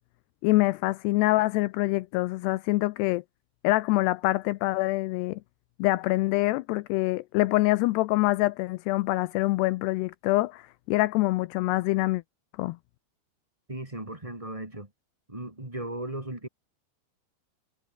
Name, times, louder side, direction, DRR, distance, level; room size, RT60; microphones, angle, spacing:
voice 1, 0.4-3.2 3.6-5.4 5.8-12.2 12.6-12.8, left 20 dB, 90° left, 2.4 m, -25 dB
voice 2, 13.7-14.9 15.3-16.5, right 1 dB, 10° right, 2.0 m, -36 dB
omnidirectional pair, 5.4 m